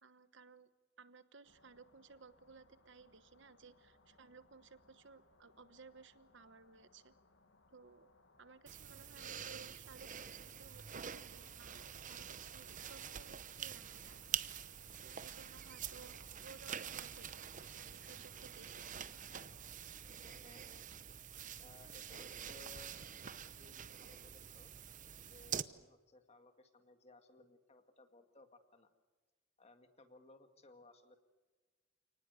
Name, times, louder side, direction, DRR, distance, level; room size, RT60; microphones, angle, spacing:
voice 1, 0.0-0.7 1.0-7.1 7.7-8.1 8.4-14.3 15.0-19.0, right 5 dB, 70° right, 13 dB, 1.2 m, -59 dB
sound 1, 1.4-20.4, left 3 dB, 85° left, 2.1 m, -69 dB
sound 2, 8.7-25.6, right 8 dB, 40° right, 0.8 m, -46 dB
voice 2, 20.4-21.0 21.6-24.7 25.2-28.9 29.6-31.2, left 2 dB, 35° left, 7 dB, 2.0 m, -62 dB
29.0 x 19.0 x 8.2 m, 1.3 s
head